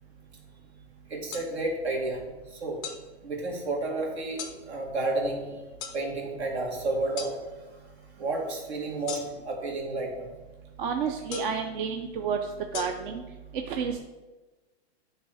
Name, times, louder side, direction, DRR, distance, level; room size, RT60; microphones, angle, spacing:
voice 1, 1.1-2.8 3.2-5.6 5.9-7.8 8.2-10.3, right 2 dB, 75° right, 0 dB, 2.1 m, -31 dB
sound 1, 1.3-1.5 2.8-3.0 4.4-4.6 5.8-6.0 7.2-7.3 9.1-9.5 11.3-11.6 12.7-12.8, left 7 dB, 15° left, 0.3 m, -36 dB
voice 2, 10.8-13.2 13.5-14.0, right 6 dB, 50° right, 5 dB, 0.5 m, -30 dB
8.9 x 3.2 x 4.8 m, 1.2 s
hypercardioid pair, 150°, 33 cm